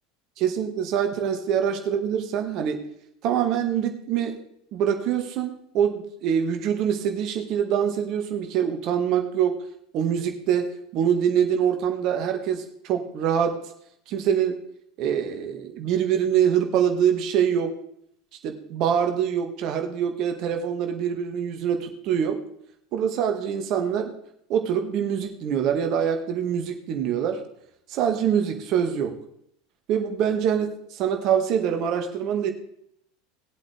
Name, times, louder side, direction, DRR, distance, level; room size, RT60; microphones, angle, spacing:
voice 1, 0.4-2.8 3.2-4.4 4.7-9.6 9.9-10.7 10.9-13.6 14.1-14.6 15.0-17.7 18.4-22.4 22.9-24.1 24.5-27.4 27.9-29.2 29.9-32.5, right 8 dB, 45° right, 5 dB, 1.9 m, -24 dB
19.0 x 8.3 x 3.4 m, 0.72 s
figure-of-eight pair, 75°, 0 cm